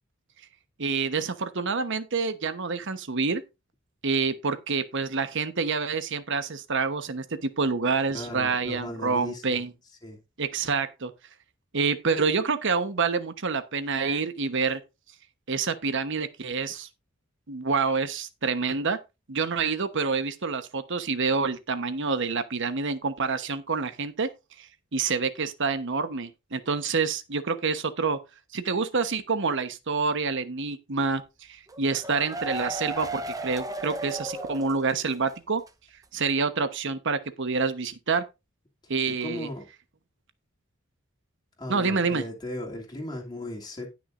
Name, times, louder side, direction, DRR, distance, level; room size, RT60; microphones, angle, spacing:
voice 1, 0.8-3.4 4.0-9.7 10.4-11.1 11.7-14.8 15.5-16.9 17.5-19.0 19.3-24.3 24.6-28.2 28.5-31.2 31.5-35.6 36.1-38.2 38.9-39.5 41.7-42.2, right 4 dB, 60° right, 1.1 m, -27 dB
voice 2, 8.1-9.6 10.0-10.2 39.1-39.7 41.6-43.9, left 1 dB, 20° left, 2.7 m, -37 dB
sound 1, 31.7-35.3 35.6-35.7 36.0-36.1, right 2 dB, 15° right, 0.9 m, -35 dB
18.5 x 6.2 x 2.6 m
head